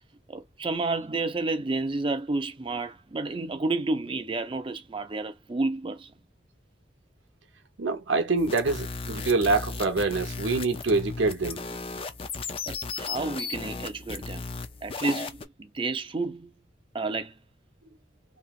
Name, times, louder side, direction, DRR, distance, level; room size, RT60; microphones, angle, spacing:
voice 1, 0.3-6.1 12.7-14.4 14.8-16.5 16.9-17.3, right 3 dB, 25° right, 0.5 m, -30 dB
voice 2, 7.8-11.6, right 3 dB, 85° right, 0.7 m, -25 dB
sound 1, 8.4-15.4, left 4 dB, 30° left, 0.4 m, -36 dB
3.0 x 2.6 x 2.4 m
head